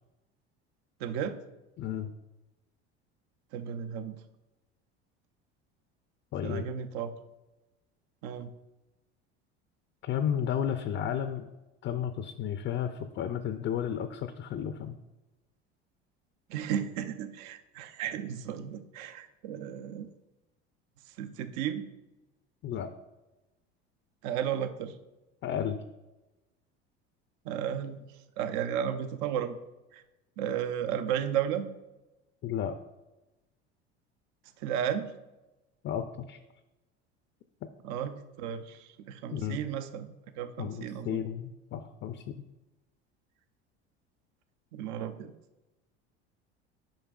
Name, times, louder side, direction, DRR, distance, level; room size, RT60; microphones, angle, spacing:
voice 1, 1.0-1.4 3.5-4.2 6.4-7.1 8.2-8.5 16.5-20.1 21.2-21.9 24.2-25.0 27.4-28.0 28.4-29.6 29.9-30.0 30.4-31.7 34.6-35.1 37.8-40.1 40.4-41.2 44.7-45.3, right 9 dB, 60° right, 10 dB, 0.6 m, -34 dB
voice 2, 1.8-2.1 6.3-6.7 10.0-11.5 11.8-15.0 22.6-22.9 25.4-25.8 32.4-32.8 35.8-36.4 39.3-39.6 40.6-42.4, left 9 dB, 35° left, 9 dB, 0.4 m, -33 dB
10.0 x 5.1 x 2.4 m, 1.0 s
hypercardioid pair, 75°, 33 cm